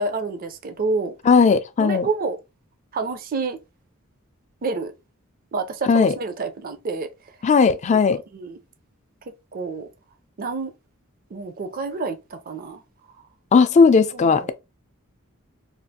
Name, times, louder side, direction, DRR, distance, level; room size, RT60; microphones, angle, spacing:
voice 1, 0.0-1.1 1.8-2.4 2.9-3.6 4.6-4.9 5.5-7.1 8.3-8.6 9.5-9.9 10.4-10.7 11.3-12.8 14.1-14.5, right 3 dB, 45° right, 0.5 m, -28 dB
voice 2, 1.2-2.1 5.9-6.1 7.4-8.2 13.5-14.5, left 5 dB, 35° left, 0.3 m, -16 dB
3.2 x 2.4 x 2.7 m
head